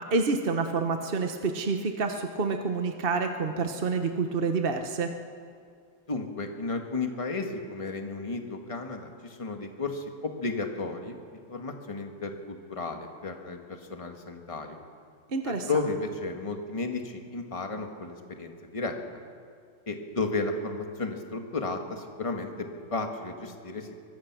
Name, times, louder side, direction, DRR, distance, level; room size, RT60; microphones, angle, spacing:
voice 1, 0.0-5.1 15.3-15.7, right 4 dB, 40° right, 5 dB, 0.8 m, -28 dB
voice 2, 6.1-11.1 11.5-14.8 15.4-18.9 19.9-22.5 22.9-23.9, left 3 dB, 15° left, 3 dB, 1.6 m, -33 dB
24.0 x 23.0 x 6.1 m, 2.2 s
omnidirectional pair, 2.4 m